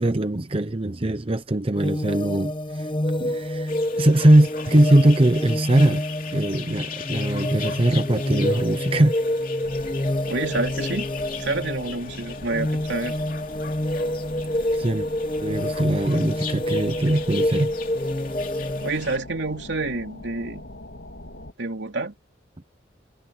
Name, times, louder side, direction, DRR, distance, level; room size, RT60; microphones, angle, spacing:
voice 1, 0.0-2.9 3.2-6.1 6.3-9.2 14.7-15.1 15.4-17.7, right 1 dB, 30° right, 0.8 m, -21 dB
sound 1, 1.8-18.9, left 1 dB, 25° left, 0.9 m, -28 dB
sound 2, 3.7-19.2, left 7 dB, 50° left, 2.9 m, -40 dB
sound 3, 9.6-21.5, left 1 dB, 85° left, 3.2 m, -42 dB
voice 2, 10.3-11.1 11.4-13.2 18.8-20.7 21.6-22.1, right 2 dB, 70° right, 3.3 m, -28 dB
head